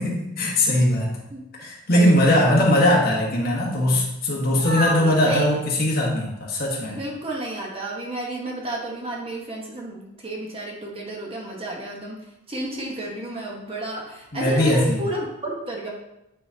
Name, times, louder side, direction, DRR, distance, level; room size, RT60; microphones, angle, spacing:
voice 1, 0.0-1.1 1.5-7.0 14.3-15.0, left 1 dB, 45° left, -3 dB, 1.6 m, -20 dB
voice 2, 1.9-2.3 4.6-5.5 6.9-12.2 12.5-15.9, right 1 dB, 25° right, -2 dB, 1.1 m, -31 dB
9.1 x 4.9 x 2.9 m, 0.88 s
head